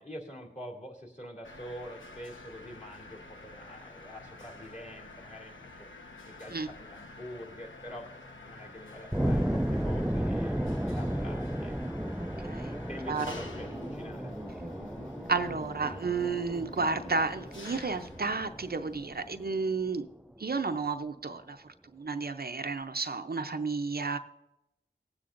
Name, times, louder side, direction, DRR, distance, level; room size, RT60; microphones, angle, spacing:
voice 1, 0.0-5.9 6.3-8.1 8.4-11.7 12.9-14.3, equal, 40° left, -3 dB, 2.5 m, -45 dB
Mechanisms, 1.4-19.5, left 2 dB, 80° left, 1.0 m, -49 dB
sound 1, 9.1-19.9, equal, 5° right, 0.3 m, -34 dB
voice 2, 12.4-12.8 13.1-13.3 15.3-20.1 20.4-21.6 21.9-24.2, right 4 dB, 50° right, 8 dB, 0.5 m, -32 dB
19.0 x 8.4 x 2.5 m, 0.92 s
wide cardioid pair, 50°, 20 cm